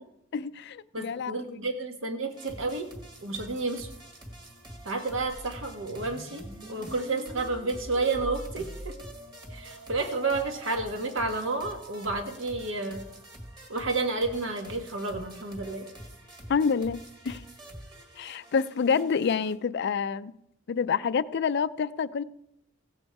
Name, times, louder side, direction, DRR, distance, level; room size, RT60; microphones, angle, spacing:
voice 1, 0.3-1.6 16.5-17.0 17.2-17.4 18.2-20.3 20.7-22.2, left 6 dB, 55° left, 0.4 m, -27 dB
voice 2, 0.9-2.9 3.2-3.9 4.8-8.9 9.5-13.0 13.7-15.9, right 3 dB, 70° right, 1.5 m, -31 dB
sound 1, 2.3-19.6, equal, 25° right, 2.1 m, -46 dB
sound 2, 5.3-12.1, right 2 dB, 45° right, 1.5 m, -48 dB
16.0 x 7.9 x 4.7 m
head